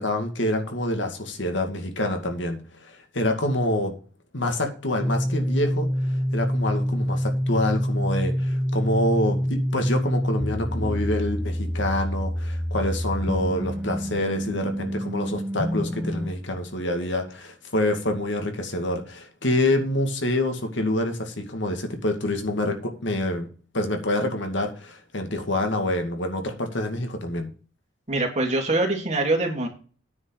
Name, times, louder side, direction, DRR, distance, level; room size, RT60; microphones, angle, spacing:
voice 1, 0.0-3.9 4.3-27.5, left 1 dB, 65° left, 5 dB, 2.2 m, -27 dB
sound 1, 5.0-16.3, equal, 5° right, 0.6 m, -26 dB
voice 2, 28.1-29.7, right 2 dB, 35° right, 2 dB, 3.1 m, -24 dB
9.6 x 5.4 x 6.8 m, 0.38 s
head